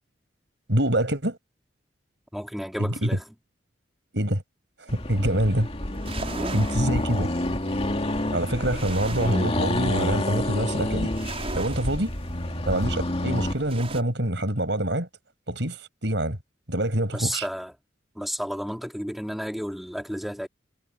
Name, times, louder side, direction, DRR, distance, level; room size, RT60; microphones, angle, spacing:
voice 1, 0.7-1.4 3.0-3.1 4.1-4.4 4.8-5.7 6.5-7.3 8.3-11.1 11.6-12.1 12.7-15.1 15.5-15.8 16.0-16.4 16.7-17.4, right 1 dB, 75° right, 6.8 m, -25 dB
voice 2, 2.3-3.2 6.4-6.6 17.1-17.7 18.1-20.5, equal, ahead, 3.1 m, -32 dB
Accelerating revving vroom, 4.9-13.6, left 1 dB, 35° left, 2.5 m, -28 dB
sound 1, 5.9-14.0, right 3 dB, 35° right, 5.8 m, -40 dB
head